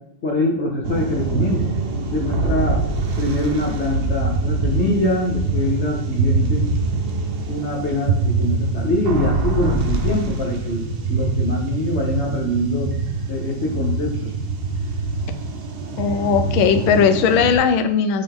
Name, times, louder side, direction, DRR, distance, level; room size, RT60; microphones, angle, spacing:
voice 1, 0.2-1.8 2.1-2.8 3.2-6.7 7.5-12.9 13.3-14.3, left 1 dB, 50° left, 0 dB, 0.9 m, -24 dB
sound 1, 0.8-17.6, right 3 dB, 60° right, 1.2 m, -24 dB
voice 2, 16.0-18.2, left 7 dB, 80° left, 9 dB, 1.4 m, -18 dB
9.0 x 3.5 x 3.6 m, 0.83 s
omnidirectional pair, 2.3 m